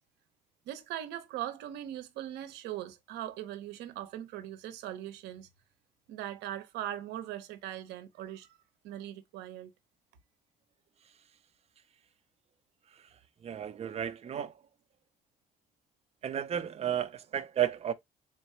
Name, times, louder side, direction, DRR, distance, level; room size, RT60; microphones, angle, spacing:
voice 1, 0.7-5.5 6.1-8.5 8.8-9.7, right 12 dB, 90° right, 0.7 m, -40 dB
voice 2, 13.4-14.5 16.2-17.9, right 9 dB, 40° right, 0.5 m, -33 dB
4.0 x 2.2 x 4.3 m
cardioid pair, 110°, 17 cm